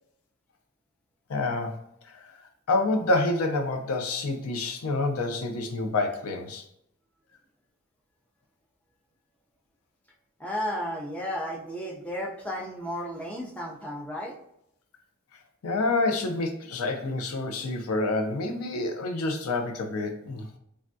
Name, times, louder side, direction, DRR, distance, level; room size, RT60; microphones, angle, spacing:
voice 1, 1.3-2.4 2.7-6.6 15.6-20.5, left 2 dB, 85° left, 5 dB, 0.5 m, -28 dB
voice 2, 10.4-14.4, equal, 5° left, -3 dB, 0.5 m, -33 dB
3.4 x 2.2 x 2.5 m, 0.76 s
head